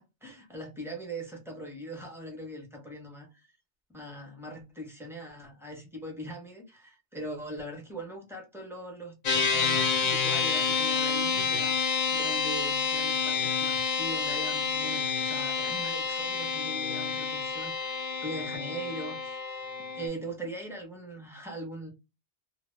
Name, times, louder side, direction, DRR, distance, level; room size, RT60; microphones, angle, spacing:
voice 1, 0.0-3.3 3.9-19.6 19.9-21.9, right 1 dB, 5° right, 0.6 m, -41 dB
sound 1, 9.2-20.1, left 5 dB, 50° left, 0.5 m, -29 dB
2.1 x 2.0 x 3.1 m
omnidirectional pair, 1.1 m